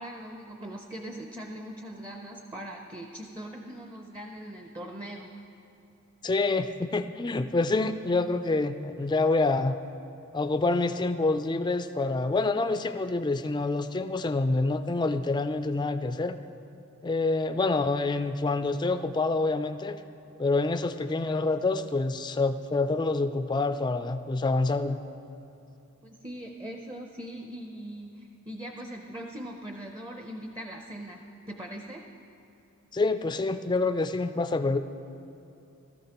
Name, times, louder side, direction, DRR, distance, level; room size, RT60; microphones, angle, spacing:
voice 1, 0.0-5.3 26.0-32.0, right 1 dB, 20° right, 2 dB, 0.6 m, -41 dB
voice 2, 6.2-9.8 10.3-16.4 17.0-20.0 20.4-25.0 32.9-34.8, left 3 dB, 20° left, 9 dB, 0.4 m, -27 dB
18.5 x 13.5 x 3.0 m, 2.8 s
head